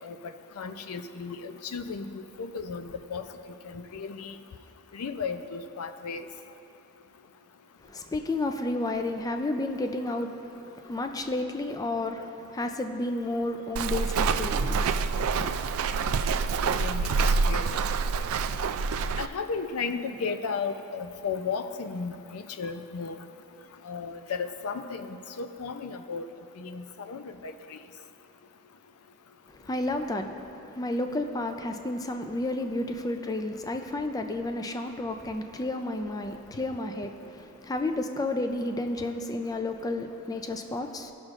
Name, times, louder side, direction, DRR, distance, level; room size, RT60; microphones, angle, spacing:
voice 1, 0.0-3.3 3.6-4.4 4.9-6.3 16.7-17.1 17.5-17.8 19.2-23.2 23.8-26.2 26.6-27.8, left 5 dB, 85° left, 9 dB, 0.5 m, -35 dB
voice 2, 7.8-15.5 29.5-41.1, left 2 dB, 15° left, 6 dB, 0.4 m, -32 dB
Walk footsteps, 13.8-19.3, right 4 dB, 70° right, 0.3 m, -26 dB
18.0 x 6.3 x 2.5 m, 2.8 s
head